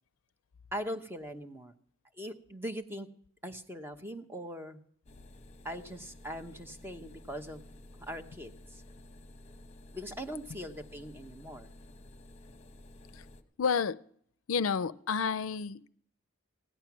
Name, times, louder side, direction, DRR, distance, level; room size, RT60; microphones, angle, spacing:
voice 1, 0.7-1.7 2.2-3.1 3.4-4.8 5.6-7.6 8.0-8.8 9.9-11.7, equal, 10° right, 0.9 m, -41 dB
sound 1, 5.1-13.4, left 1 dB, 30° left, 1.0 m, -53 dB
voice 2, 13.6-14.0 14.5-15.9, left 5 dB, 75° left, 0.5 m, -30 dB
16.0 x 11.0 x 6.0 m
head